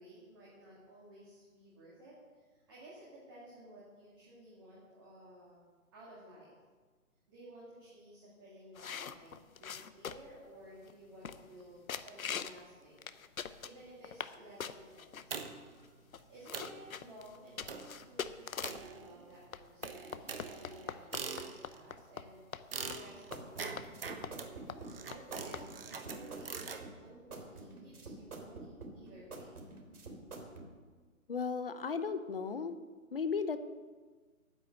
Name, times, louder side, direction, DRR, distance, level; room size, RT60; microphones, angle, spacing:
voice 1, 0.0-6.6 7.3-13.1 13.4-15.5 16.3-22.4 22.9-23.6 24.3-29.6, right 1 dB, 15° right, -7 dB, 1.8 m, -55 dB
sound 1, 8.8-10.4 10.9-11.0 11.2-11.6 11.9-12.6 13.0-14.3 14.6-15.2 15.8-15.9 16.1-18.9 19.5-22.3 22.5-22.6 22.9-23.0 23.3-23.4 23.8-23.9 24.2-24.4 24.7-24.8 25.1-25.2 25.5-25.7, left 7 dB, 65° left, 0.9 m, -42 dB
sound 2, 15.3-15.8 16.2-16.3 16.5-16.8 17.7-18.0 18.6-19.4 19.8-21.8 22.7-26.8, right 5 dB, 40° right, 1.1 m, -43 dB
sound 3, 22.8-30.7, right 3 dB, 75° right, 3.5 m, -48 dB
voice 2, 31.3-32.8 33.1-33.6, left 5 dB, 40° left, 11 dB, 0.8 m, -35 dB
9.9 x 9.5 x 7.9 m, 1.4 s
hypercardioid pair, 170°, 45 cm